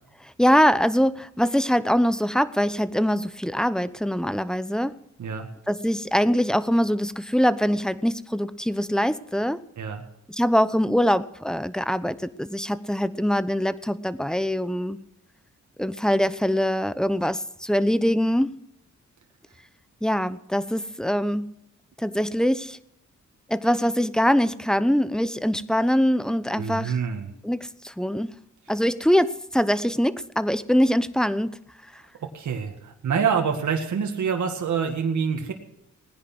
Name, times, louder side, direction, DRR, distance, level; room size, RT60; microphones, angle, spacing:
voice 1, 0.2-5.0 5.7-9.6 10.3-15.0 15.8-18.6 20.0-21.5 22.0-22.8 23.5-27.0 27.4-28.3 28.7-31.5 31.9-32.0, equal, ahead, 0.8 m, -23 dB
voice 2, 26.6-27.3 32.2-35.5, right 6 dB, 75° right, 2.0 m, -26 dB
18.5 x 10.5 x 6.1 m
cardioid pair, 75°, 30 cm